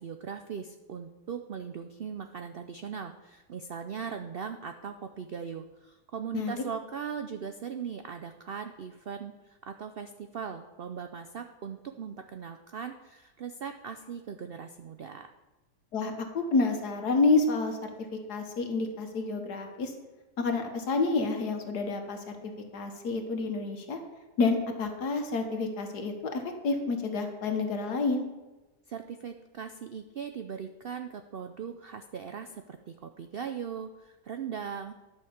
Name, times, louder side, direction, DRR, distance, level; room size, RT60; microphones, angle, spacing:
voice 1, 0.0-15.3 28.9-34.9, right 7 dB, 75° right, 7 dB, 0.5 m, -39 dB
voice 2, 15.9-17.9 18.3-19.9 20.4-24.0 24.4-28.3, left 3 dB, 80° left, 4 dB, 1.9 m, -29 dB
11.5 x 5.6 x 7.1 m, 1.1 s
omnidirectional pair, 1.7 m